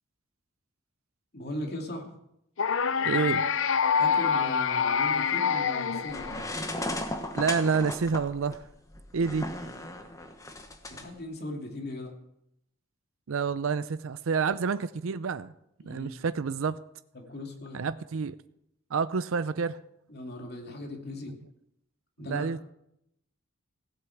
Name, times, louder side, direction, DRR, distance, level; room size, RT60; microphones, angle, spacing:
voice 1, 1.3-2.1 3.9-6.3 9.6-9.7 10.9-12.1 15.8-16.1 17.1-17.8 20.1-21.4 22.2-22.5, left 1 dB, 50° left, 2 dB, 2.6 m, -38 dB
sound 1, 2.6-6.8, left 6 dB, 70° left, 0.6 m, -26 dB
voice 2, 3.0-3.5 7.4-8.6 9.1-9.5 13.3-15.5 15.8-16.8 17.7-18.4 18.9-19.8 22.2-22.6, right 5 dB, 80° right, 14 dB, 0.5 m, -28 dB
sound 2, 6.1-11.0, left 1 dB, 15° left, 1.2 m, -36 dB
16.0 x 8.1 x 7.1 m, 0.80 s
head